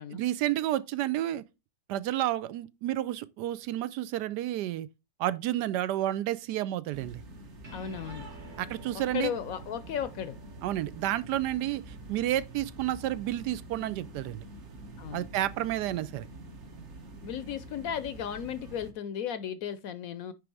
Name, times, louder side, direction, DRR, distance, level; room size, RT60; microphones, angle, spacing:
voice 1, 0.1-1.4 1.9-4.9 5.2-7.2 8.6-9.3 10.6-14.4 15.1-16.3, right 13 dB, 85° right, 1.2 m, -30 dB
sound 1, 6.9-18.9, right 2 dB, 45° right, 1.3 m, -46 dB
sound 2, 7.6-14.4, right 3 dB, 70° right, 2.8 m, -52 dB
voice 2, 7.7-8.3 9.1-10.4 15.0-15.3 17.2-20.3, left 9 dB, 70° left, 0.9 m, -35 dB
9.6 x 3.4 x 4.7 m
omnidirectional pair, 1.8 m